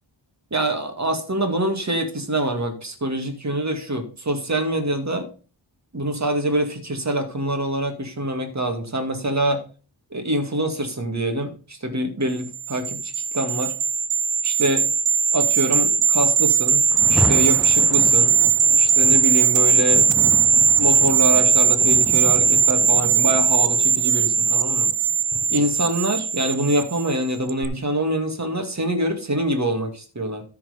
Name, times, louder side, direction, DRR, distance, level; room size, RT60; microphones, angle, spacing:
voice 1, 0.5-5.3 5.9-9.6 10.1-13.7 14.4-14.9 15.3-18.4 18.8-20.3 20.8-24.9 25.5-30.4, right 1 dB, 40° right, 6 dB, 2.1 m, -25 dB
sound 1, 12.5-27.1 27.5-27.6, right 6 dB, 75° right, 0.8 m, -19 dB
Rain, 16.9-25.9, equal, ahead, 0.5 m, -33 dB
13.5 x 4.7 x 5.1 m, 0.36 s
wide cardioid pair, 95°, 45 cm